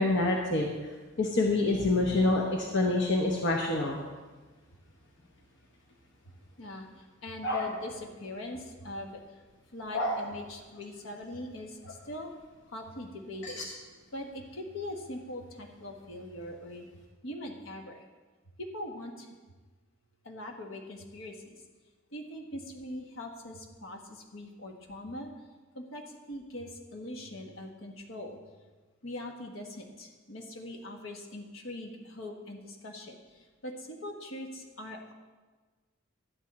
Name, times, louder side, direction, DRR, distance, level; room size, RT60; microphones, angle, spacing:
voice 1, 0.0-4.0 7.4-7.7 9.9-10.2 13.4-13.6, left 2 dB, 65° left, 0 dB, 1.0 m, -27 dB
voice 2, 7.2-9.1 9.7-12.3 12.7-13.6 14.1-16.9 17.2-18.0 18.6-19.3 20.2-21.6 22.1-25.3 25.7-28.4 29.0-35.1, left 1 dB, 80° left, 2 dB, 1.4 m, -42 dB
11.5 x 9.1 x 4.2 m, 1.3 s
head